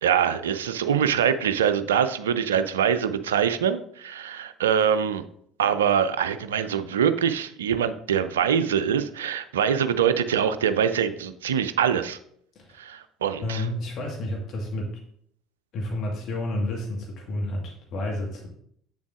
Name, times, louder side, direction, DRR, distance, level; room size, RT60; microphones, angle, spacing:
voice 1, 0.0-5.2 5.6-12.2 12.8-13.7, right 8 dB, 75° right, 12 dB, 0.4 m, -24 dB
voice 2, 13.4-14.9 15.7-18.5, left 1 dB, 50° left, 0 dB, 1.6 m, -30 dB
7.6 x 7.1 x 2.5 m, 0.66 s
figure-of-eight pair, 60°, 0 cm